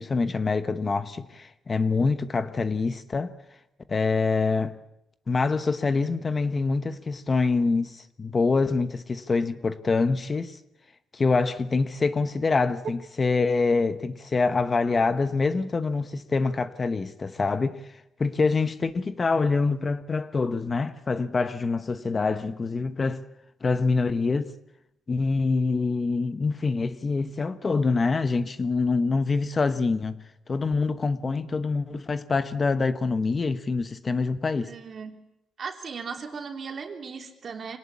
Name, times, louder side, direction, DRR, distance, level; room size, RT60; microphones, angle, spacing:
voice 1, 0.0-3.3 3.9-4.7 5.3-10.6 11.1-23.2 23.6-24.5 25.1-30.2 30.5-34.7, left 4 dB, 30° left, 1.1 m, -25 dB
voice 2, 34.6-35.2 35.6-37.8, right 5 dB, 45° right, 3.5 m, -37 dB
25.5 x 18.5 x 8.5 m
cardioid pair, 120°, 0 cm